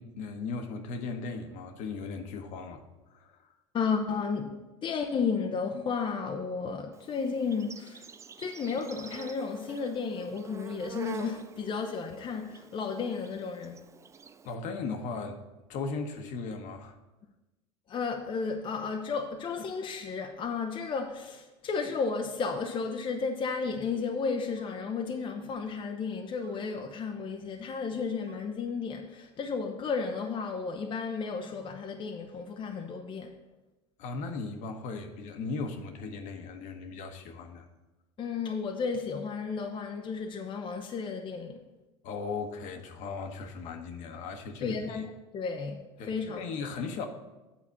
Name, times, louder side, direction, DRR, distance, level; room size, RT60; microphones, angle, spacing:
voice 1, 0.0-2.8 3.1-3.5 14.4-15.4 15.7-17.0 34.0-37.7 42.0-45.0 46.0-47.1, left 4 dB, 55° left, 1.1 m, -37 dB
voice 2, 3.7-4.5 4.8-8.1 8.4-13.8 17.9-33.4 38.2-41.7 44.6-45.1 45.3-46.7, left 5 dB, 35° left, 0.7 m, -33 dB
Insect, 6.9-14.5, right 6 dB, 20° right, 0.4 m, -47 dB
sound 1, 22.9-23.0 24.5-24.9 26.4-26.7 28.2-28.6 30.1-30.4, right 6 dB, 65° right, 1.1 m, -56 dB
8.7 x 4.1 x 7.0 m
hypercardioid pair, 85°, 15 cm